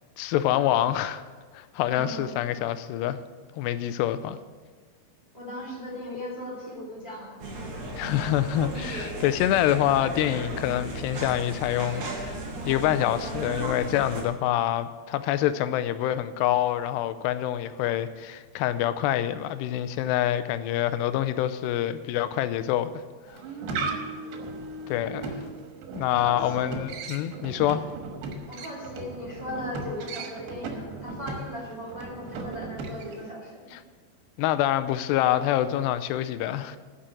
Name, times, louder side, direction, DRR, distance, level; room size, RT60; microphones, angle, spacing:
voice 1, 0.2-1.2 1.5-3.2 3.6-4.4 8.0-12.4 12.7-22.9 24.9-25.3 25.9-27.8 33.7-33.8 34.4-36.8, left 12 dB, 90° left, 2.7 m, -26 dB
voice 2, 1.9-2.4 5.3-7.4 23.6-24.1 26.1-26.8 28.5-33.8, left 1 dB, 15° right, 1.8 m, -38 dB
sound 1, 7.4-14.2, right 2 dB, 45° right, 1.9 m, -35 dB
sound 2, 23.3-33.3, right 3 dB, 90° right, 3.3 m, -37 dB
10.0 x 6.1 x 8.4 m
omnidirectional pair, 4.7 m